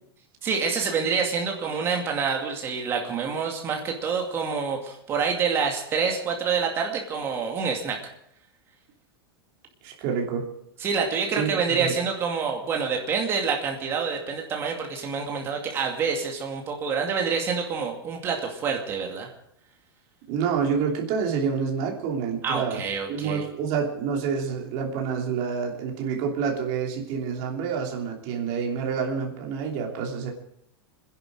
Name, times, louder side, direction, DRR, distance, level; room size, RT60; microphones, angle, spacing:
voice 1, 0.4-8.0 10.8-19.3 22.4-23.4, right 5 dB, 20° right, 2 dB, 2.4 m, -27 dB
voice 2, 9.8-10.5 11.4-11.5 11.8-12.0 20.3-22.8 23.1-30.3, right 6 dB, 35° right, -1 dB, 3.0 m, -28 dB
25.5 x 10.5 x 4.9 m, 0.76 s
supercardioid pair, 175°, 13 cm